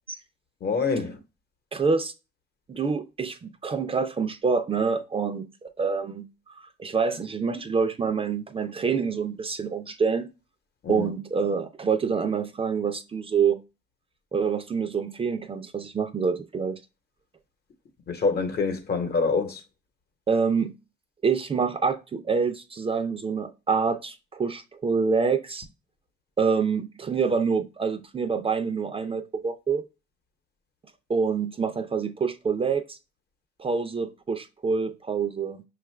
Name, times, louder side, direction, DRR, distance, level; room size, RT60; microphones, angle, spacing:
voice 1, 0.6-1.2 10.8-11.1 18.1-19.6, left 4 dB, 55° left, 1.0 m, -26 dB
voice 2, 1.7-2.1 2.7-6.3 6.8-10.3 10.9-13.6 14.3-16.8 20.3-20.7 21.2-25.7 26.4-29.8 31.1-33.0 33.6-35.6, right 5 dB, 30° right, 0.4 m, -26 dB
5.5 x 2.4 x 3.1 m
cardioid pair, 90°, 20 cm